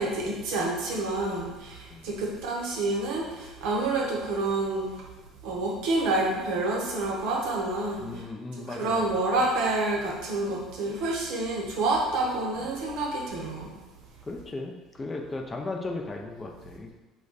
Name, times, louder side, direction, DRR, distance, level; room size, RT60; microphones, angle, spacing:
voice 1, 0.0-4.9 5.4-8.2 8.7-13.7, right 2 dB, 65° right, -3 dB, 0.6 m, -28 dB
voice 2, 8.0-9.1 14.3-16.9, left 2 dB, 25° left, 1 dB, 0.4 m, -36 dB
2.3 x 2.2 x 3.9 m, 1.2 s
figure-of-eight pair, 60°, 0 cm